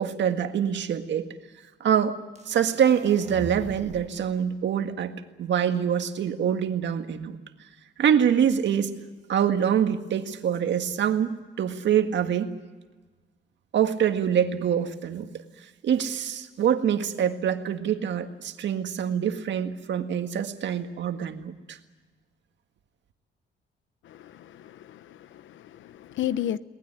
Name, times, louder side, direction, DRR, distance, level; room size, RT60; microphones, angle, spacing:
voice 1, 0.0-1.3 1.8-2.2 2.5-7.4 8.0-8.9 9.3-12.5 13.7-15.3 15.8-21.8, right 8 dB, 65° right, 1.8 m, -25 dB
sound 1, 2.4-4.3, right 4 dB, 35° right, 1.5 m, -42 dB
voice 2, 24.0-26.6, left 11 dB, 75° left, 0.9 m, -33 dB
22.0 x 19.0 x 9.5 m
cardioid pair, 90°, 20 cm